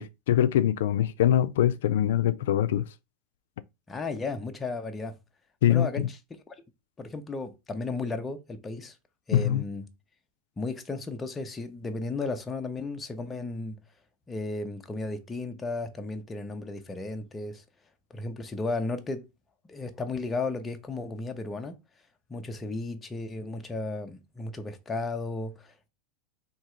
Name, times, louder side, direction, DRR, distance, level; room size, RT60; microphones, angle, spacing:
voice 1, 0.0-2.9 5.6-6.1 9.3-9.6, left 11 dB, 85° left, 0.3 m, -23 dB
voice 2, 3.9-5.2 5.7-6.0 6.5-6.6 7.0-9.0 9.3-9.9 10.6-13.8 14.3-17.6 18.1-19.3 19.6-21.8 22.3-25.9, left 3 dB, 15° left, 0.6 m, -34 dB
3.6 x 2.8 x 4.4 m
supercardioid pair, 155°, 0 cm